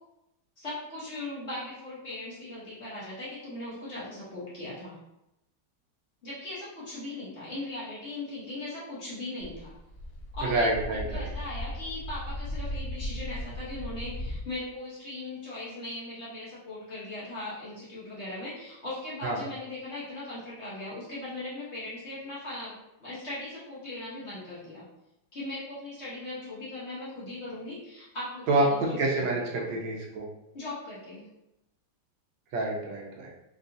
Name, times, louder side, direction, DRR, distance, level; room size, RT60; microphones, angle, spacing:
voice 1, 0.6-5.0 6.2-9.7 10.3-22.7 23.0-24.8 25.3-29.8 30.5-31.3, left 2 dB, 45° left, -9 dB, 1.1 m, -39 dB
Helicopter on the pad and taking off, 9.4-14.4, left 1 dB, 85° left, 0.6 m, -36 dB
voice 2, 10.4-11.3 19.2-19.4 28.5-30.3 32.5-33.3, right 2 dB, 85° right, -2 dB, 1.4 m, -27 dB
3.8 x 2.4 x 2.6 m, 0.88 s
omnidirectional pair, 1.9 m